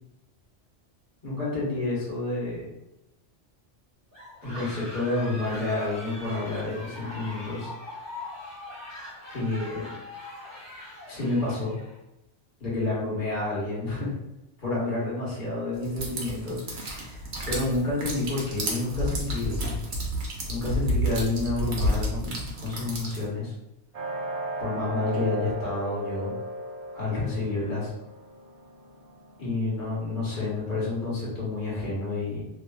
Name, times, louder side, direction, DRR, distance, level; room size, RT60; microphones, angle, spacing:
voice 1, 1.2-2.7 4.4-7.7 9.3-9.8 11.1-11.8 12.6-14.1 14.6-19.8 20.5-23.5 24.6-26.3 26.9-27.9 29.4-32.4, left 2 dB, 45° left, -7 dB, 1.2 m, -29 dB
sound 1, 4.1-12.0, left 2 dB, 15° right, 1.0 m, -42 dB
sound 2, 15.8-23.3, equal, 75° right, 1.0 m, -30 dB
sound 3, 23.9-29.6, right 1 dB, 50° right, 0.4 m, -36 dB
2.8 x 2.4 x 2.2 m, 0.89 s
omnidirectional pair, 1.2 m